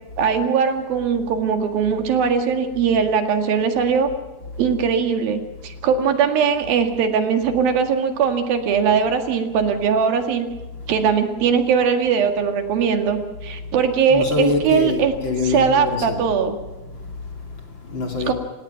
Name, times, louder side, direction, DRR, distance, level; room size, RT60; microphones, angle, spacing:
voice 1, 0.2-4.1 4.6-10.5 10.9-15.1 15.5-16.5 18.3-18.4, right 6 dB, 75° right, 3.6 m, -20 dB
voice 2, 14.1-16.2 16.8-18.3, left 3 dB, 35° left, 2.7 m, -26 dB
27.5 x 17.0 x 5.8 m
omnidirectional pair, 4.3 m